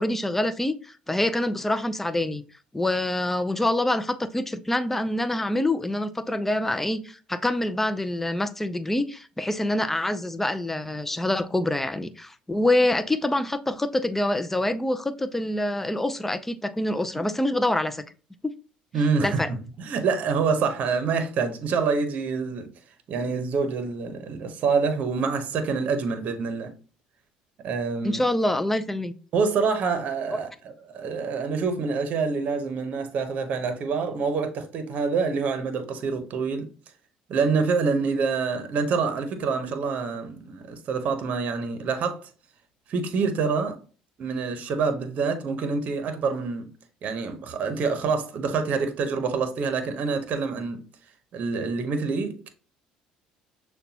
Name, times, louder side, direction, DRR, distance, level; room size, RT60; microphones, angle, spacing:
voice 1, 0.0-2.4 2.7-18.0 18.4-18.5 19.2-19.5 28.0-29.1 30.3-30.4, left 1 dB, 10° left, 0.4 m, -26 dB
voice 2, 18.9-22.7 23.1-26.7 27.6-28.2 29.3-36.7 37.3-42.2 42.9-43.8 44.2-46.7 47.0-50.8 51.3-52.5, right 5 dB, 55° right, 0.8 m, -26 dB
6.5 x 2.2 x 2.8 m
supercardioid pair, 80°, 3 cm